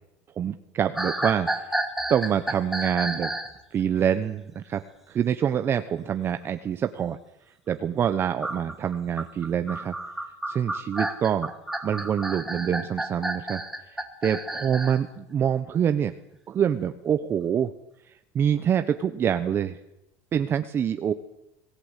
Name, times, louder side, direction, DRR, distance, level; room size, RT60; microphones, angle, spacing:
voice 1, 0.4-1.8 2.1-3.3 3.7-7.2 7.7-9.9 10.5-11.5 11.8-13.6 13.9-16.1 16.5-17.7 18.3-19.8 20.3-21.1, right 8 dB, 30° right, 9 dB, 1.0 m, -26 dB
sound 1, 1.0-3.6 8.4-15.0, right 1 dB, 5° right, 2.5 m, -31 dB
25.5 x 17.5 x 8.3 m, 0.88 s
supercardioid pair, 130°, 7 cm